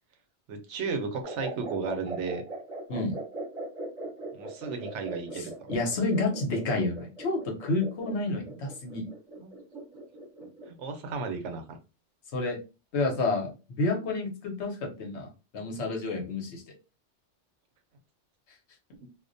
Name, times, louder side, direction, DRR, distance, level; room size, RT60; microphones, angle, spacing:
voice 1, 0.5-2.4 4.3-5.5 8.5-8.6 9.4-9.8 10.7-11.8, right 4 dB, 80° right, 6 dB, 0.9 m, -34 dB
sound 1, 1.2-10.8, right 2 dB, 30° right, 1.1 m, -40 dB
voice 2, 5.3-9.0 12.3-12.6 12.9-15.3 15.5-16.6, left 2 dB, 70° left, 1 dB, 1.0 m, -29 dB
2.4 x 2.1 x 2.5 m, 0.30 s
omnidirectional pair, 1.2 m